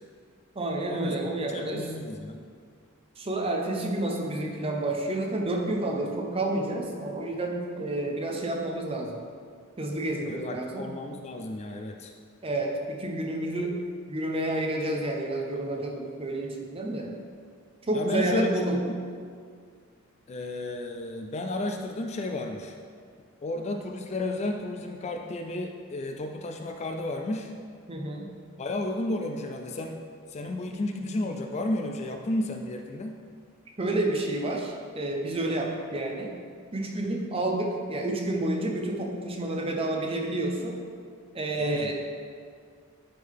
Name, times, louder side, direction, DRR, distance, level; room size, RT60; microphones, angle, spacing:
voice 1, 0.5-1.8 3.2-9.2 9.8-10.9 12.4-13.8 14.1-17.1 17.9-18.8 27.9-28.3 30.7-31.2 33.8-36.3 36.7-40.8 41.3-41.9, right 1 dB, 25° right, 1 dB, 0.7 m, -30 dB
voice 2, 1.5-2.4 10.3-12.1 16.9-17.1 17.9-18.5 20.3-22.8 23.4-27.5 28.6-30.0 30.3-33.1 41.6-41.9, left 1 dB, 30° left, 4 dB, 0.3 m, -32 dB
9.4 x 3.7 x 3.6 m, 2.1 s
head